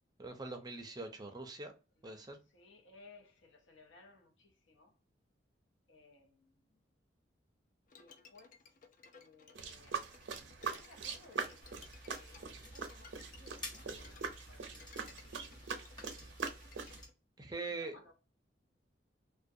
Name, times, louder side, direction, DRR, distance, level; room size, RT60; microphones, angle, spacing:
voice 1, 0.2-1.7 2.0-2.4 17.4-18.0, right 3 dB, 20° right, 0.4 m, -43 dB
voice 2, 2.0-5.0 5.9-6.8 8.0-8.6 9.1-10.1 10.6-15.4 17.6-18.1, left 2 dB, 90° left, 0.6 m, -61 dB
Bowed string instrument, 7.9-17.1, left 5 dB, 45° left, 0.4 m, -60 dB
sound 1, 9.6-17.0, right 5 dB, 85° right, 0.5 m, -43 dB
sound 2, 11.6-17.1, left 1 dB, 25° left, 1.0 m, -52 dB
2.4 x 2.1 x 2.6 m
head